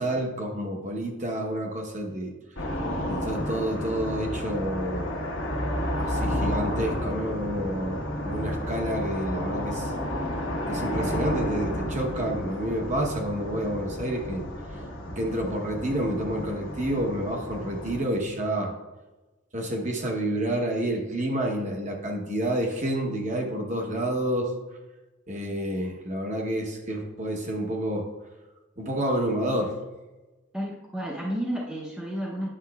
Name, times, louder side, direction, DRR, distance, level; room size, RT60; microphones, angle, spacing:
voice 1, 0.0-2.3 3.1-5.1 5.9-9.9 10.7-14.8 15.2-18.7 19.5-24.5 25.3-28.1 28.8-29.8, right 1 dB, 35° right, 1 dB, 0.9 m, -29 dB
sound 1, 2.6-18.0, equal, 70° left, 1.2 m, -31 dB
voice 2, 30.5-32.5, equal, 5° right, -4 dB, 0.7 m, -31 dB
9.9 x 7.0 x 2.3 m, 1.1 s
head